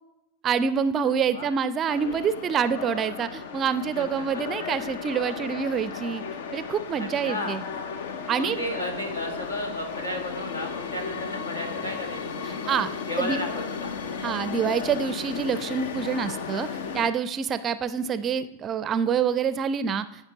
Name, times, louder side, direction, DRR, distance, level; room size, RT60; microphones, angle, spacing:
voice 1, 0.4-6.2 6.5-7.6 8.3-8.6 12.7-12.9 13.2-13.4 14.2-16.7 16.9-20.0, right 7 dB, 25° right, 14 dB, 0.4 m, -26 dB
voice 2, 1.0-1.5 3.9-4.4 7.0-7.6 8.4-12.6 13.0-13.9, left 1 dB, 75° left, 4 dB, 1.5 m, -34 dB
sound 1, 1.9-17.1, left 6 dB, 55° left, 0.7 m, -35 dB
14.0 x 5.6 x 3.0 m, 0.93 s
figure-of-eight pair, 90°, 0 cm